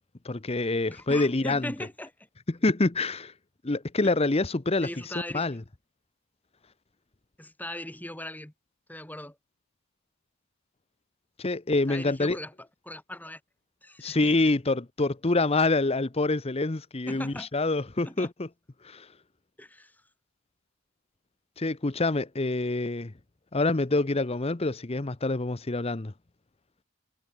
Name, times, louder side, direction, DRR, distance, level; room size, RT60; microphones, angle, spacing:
voice 1, 0.2-1.7 2.5-3.3 3.6-4.9 5.3-5.6 11.4-12.4 14.0-18.5 18.8-19.1 21.6-23.1 23.5-26.1, left 2 dB, 25° left, 0.7 m, -26 dB
voice 2, 0.9-2.1 4.8-5.5 7.4-8.5 8.9-9.4 11.9-13.4 13.8-14.5 17.1-17.5 18.0-18.3 19.6-20.0, left 1 dB, 5° left, 3.5 m, -39 dB
head